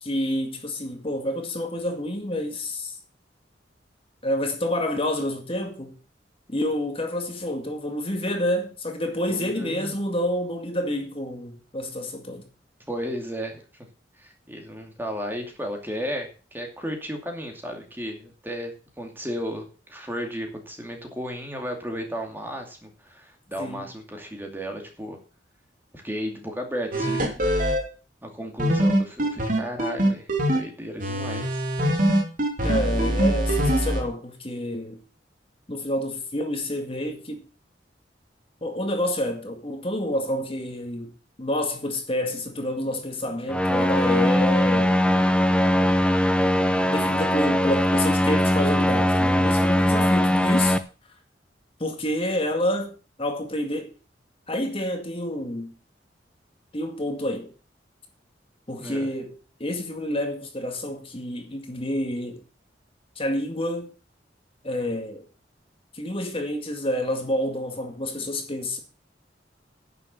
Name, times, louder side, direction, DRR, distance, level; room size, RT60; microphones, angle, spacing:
voice 1, 0.0-3.0 4.2-5.9 6.5-12.5 23.6-23.9 32.6-35.0 35.7-37.4 38.6-41.1 41.4-45.0 46.9-50.8 51.8-53.9 54.5-55.7 56.7-57.5 58.7-59.3 59.6-62.4 63.2-63.9 64.6-65.2 65.9-68.8, left 1 dB, 30° left, 2.0 m, -28 dB
voice 2, 9.3-10.0 12.9-13.6 14.2-25.2 25.9-27.4 28.2-31.6 58.8-59.1, equal, 10° right, 2.4 m, -34 dB
sound 1, 26.9-27.8 28.6-30.6 31.0-34.0, right 1 dB, 50° right, 3.1 m, -22 dB
sound 2, 43.5-50.8, left 1 dB, 5° left, 0.8 m, -20 dB
11.0 x 7.0 x 6.7 m
head